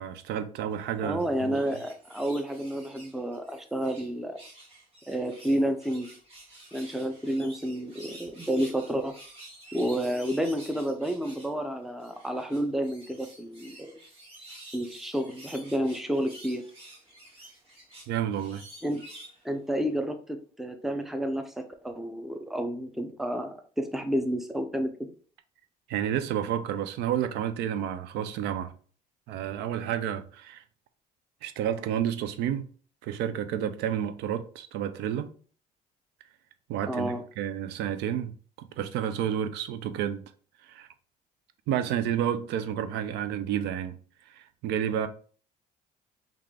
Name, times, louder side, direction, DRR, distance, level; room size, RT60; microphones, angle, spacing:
voice 1, 0.0-1.6 18.1-18.6 25.9-28.7 29.3-30.6 31.4-32.7 33.0-35.3 36.7-40.2 40.6-40.9 41.7-44.0 44.3-45.1, right 9 dB, 85° right, 0.4 m, -30 dB
voice 2, 1.0-4.4 5.1-6.1 6.7-9.1 9.7-13.9 14.7-16.6 18.8-19.0 19.4-25.1 36.9-37.2, equal, ahead, 0.4 m, -30 dB
sound 1, 1.0-4.1 4.3-11.5 12.0-19.4 19.9-20.0, right 1 dB, 35° right, 1.7 m, -50 dB
3.6 x 2.4 x 3.2 m
cardioid pair, 110°, 17 cm